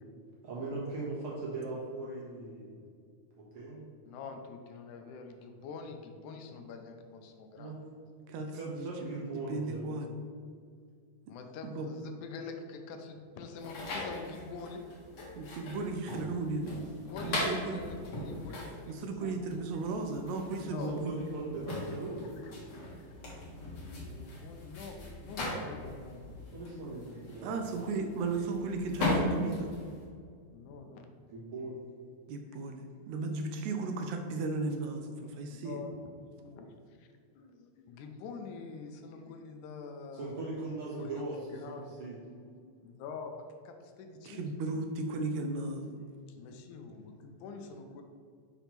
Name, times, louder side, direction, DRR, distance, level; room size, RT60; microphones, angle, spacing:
voice 1, 0.4-2.8 3.4-3.9 7.6-7.8 8.5-9.8 20.9-22.3 26.5-27.5 31.3-31.8 40.1-41.4 41.7-42.2, right 2 dB, 50° right, -6 dB, 2.1 m, -39 dB
voice 2, 4.1-7.8 11.3-14.8 17.1-19.8 20.6-20.9 21.5-22.8 23.2-23.3 24.0-26.2 27.0-27.4 30.5-31.1 35.5-37.1 37.3-40.3 41.0-41.3 41.5-42.0 42.6-44.5 46.3-48.0, left 4 dB, 85° left, 5 dB, 2.1 m, -46 dB
voice 3, 8.3-10.1 11.3-11.4 11.6-11.9 15.3-16.8 17.2-17.8 18.9-21.2 27.4-29.7 32.3-35.8 44.3-46.0, right 3 dB, 80° right, 5 dB, 1.8 m, -35 dB
sound 1, 13.6-30.1, left 2 dB, 50° left, 2.0 m, -39 dB
6.0 x 3.5 x 5.7 m, 2.2 s
omnidirectional pair, 3.5 m